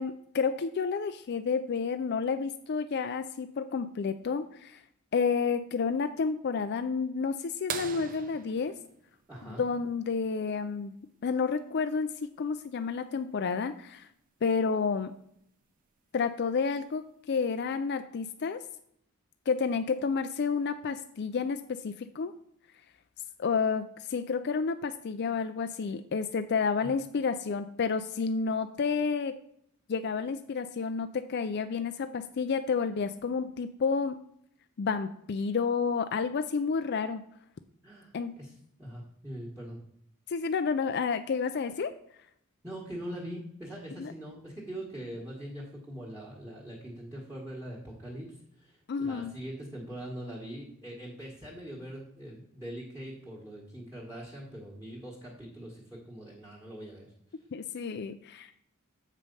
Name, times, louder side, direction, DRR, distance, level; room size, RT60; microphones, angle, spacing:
voice 1, 0.0-4.8 5.1-8.7 9.4-10.9 11.2-12.1 12.4-14.1 14.4-15.1 16.1-18.6 19.5-22.3 23.4-29.4 29.9-34.2 34.8-37.2 38.1-38.4 40.3-41.9 44.0-44.1 48.9-49.3 57.5-58.5, left 5 dB, 50° left, 9 dB, 0.4 m, -30 dB
sound 1, 7.7-10.1 12.1-12.2 14.4-14.5 16.2-16.5 17.3-17.4, right 7 dB, 40° right, 0.5 m, -40 dB
voice 2, 9.3-9.7 26.8-26.9 37.8-39.8 42.6-57.1, right 1 dB, 10° right, -3 dB, 1.6 m, -42 dB
7.5 x 5.1 x 5.4 m, 0.72 s
head